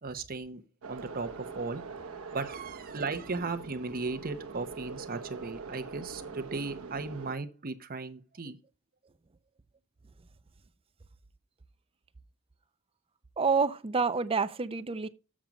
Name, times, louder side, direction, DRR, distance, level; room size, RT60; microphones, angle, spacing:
voice 1, 0.0-0.6 0.9-1.8 2.3-8.6, right 4 dB, 45° right, 0.9 m, -36 dB
sound 1, 0.8-7.3, right 4 dB, 80° right, 0.9 m, -43 dB
voice 2, 13.4-15.1, right 5 dB, 25° right, 0.5 m, -28 dB
7.4 x 6.0 x 5.1 m
head